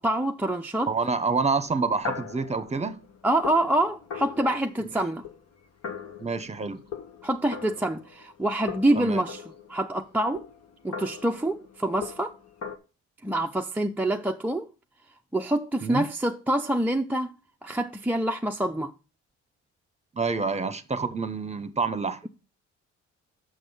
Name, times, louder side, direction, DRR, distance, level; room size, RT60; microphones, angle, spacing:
voice 1, 0.0-0.9 3.2-5.2 7.2-9.4 9.7-10.4 10.8-12.3 13.2-14.7 15.3-17.3 17.6-18.9, right 1 dB, 5° right, 0.5 m, -26 dB
voice 2, 0.9-3.0 4.8-4.9 6.2-6.8 9.0-9.2 15.8-16.1 20.2-22.2, right 4 dB, 20° right, 0.9 m, -27 dB
sound 1, 1.7-8.4 8.7-12.8, left 6 dB, 55° left, 1.3 m, -40 dB
6.4 x 6.1 x 5.3 m
cardioid pair, 90°, 30 cm